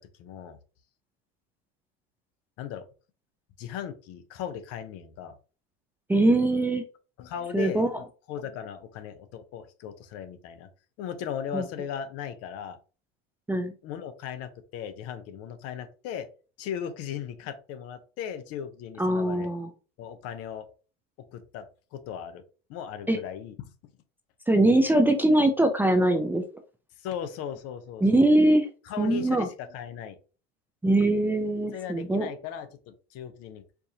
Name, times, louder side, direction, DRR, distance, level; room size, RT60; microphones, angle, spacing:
voice 1, 0.2-0.6 2.6-2.9 3.6-5.4 7.2-10.7 11.0-12.8 13.8-16.3 16.6-19.5 20.0-20.7 21.3-21.7 21.9-22.4 22.7-23.7 27.0-28.3 28.8-30.2 31.7-33.6, left 8 dB, 55° left, 10 dB, 0.7 m, -37 dB
voice 2, 6.1-6.8 7.5-7.9 11.5-11.6 13.5-13.7 19.0-19.7 23.1-23.2 24.5-26.4 28.0-28.7 29.0-29.5 30.8-32.3, right 1 dB, 5° right, 4 dB, 0.4 m, -22 dB
4.6 x 2.5 x 2.8 m, 0.35 s
supercardioid pair, 105°, 30 cm